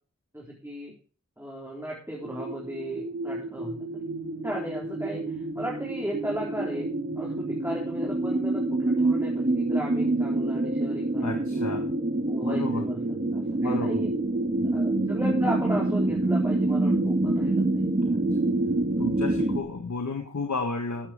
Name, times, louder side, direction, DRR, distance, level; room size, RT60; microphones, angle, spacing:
voice 1, 0.3-0.9 1.4-4.0 4.4-6.9 7.2-11.8 12.3-13.0 13.3-14.1 14.7-17.9, right 1 dB, 10° right, -3 dB, 4.2 m, -36 dB
sound 1, 2.2-19.6, right 2 dB, 35° right, 2.0 m, -27 dB
voice 2, 11.2-11.9 12.5-12.8 13.6-14.0 18.0-18.2 19.0-21.1, left 4 dB, 75° left, 5 dB, 1.9 m, -33 dB
14.0 x 8.6 x 5.1 m, 0.37 s
wide cardioid pair, 70°, 29 cm